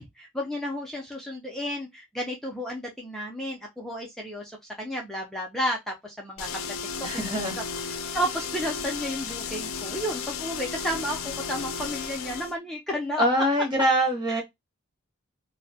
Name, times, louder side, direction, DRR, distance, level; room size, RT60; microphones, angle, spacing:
voice 1, 0.0-4.5 4.8-6.5 7.1-7.3 8.1-13.2 14.4-14.5, equal, ahead, 0.4 m, -32 dB
sound 1, 6.4-12.5, left 6 dB, 80° left, 0.4 m, -34 dB
voice 2, 7.0-7.6 13.2-14.4, equal, 20° right, 0.8 m, -24 dB
2.6 x 2.1 x 2.7 m
head